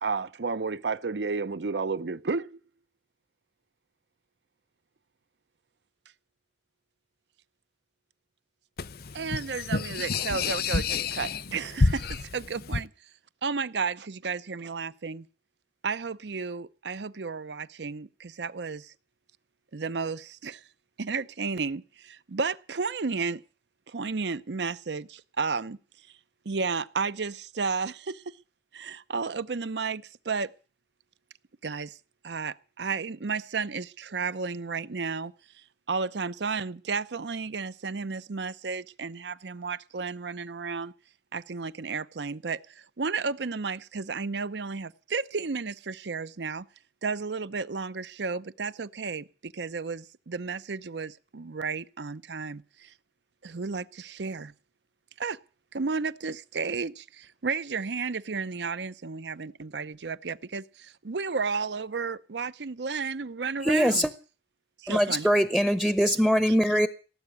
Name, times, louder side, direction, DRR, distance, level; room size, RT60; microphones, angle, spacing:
voice 1, 0.0-2.5 9.1-10.8 11.2-11.8 12.3-12.9 13.4-15.2 15.8-18.9 19.7-20.6 21.0-23.4 23.9-25.8 26.5-28.2 28.7-30.5 31.6-32.0 32.2-35.3 35.9-40.9 41.3-42.6 43.0-46.6 47.0-52.9 53.4-54.5 55.2-55.4 55.7-64.1 64.8-65.3 66.4-66.6, right 4 dB, 70° right, 0.7 m, -32 dB
voice 2, 8.8-12.2 12.5-12.8, left 4 dB, 55° left, 0.7 m, -29 dB
voice 3, 63.6-64.1 64.9-66.9, equal, ahead, 0.7 m, -22 dB
17.5 x 7.9 x 9.7 m
head